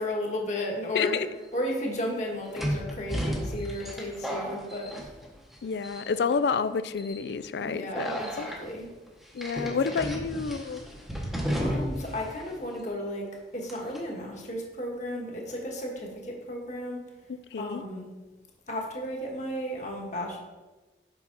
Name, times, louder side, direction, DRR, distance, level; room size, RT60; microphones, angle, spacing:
voice 1, 0.0-5.0 7.6-8.9 9.6-10.3 11.6-13.2 13.5-17.0 17.6-18.1 18.7-20.4, left 1 dB, 40° left, 1.3 m, -34 dB
voice 2, 0.9-1.3 5.6-8.5 9.3-10.8 17.5-17.8, left 5 dB, 70° left, 0.4 m, -29 dB
sound 1, 1.2-1.3 2.5-5.5 5.8-6.3 7.0-7.2 7.9-8.6 9.4-12.1 12.4-12.5 13.7-14.0, equal, ahead, 0.9 m, -33 dB
6.0 x 5.7 x 3.9 m
head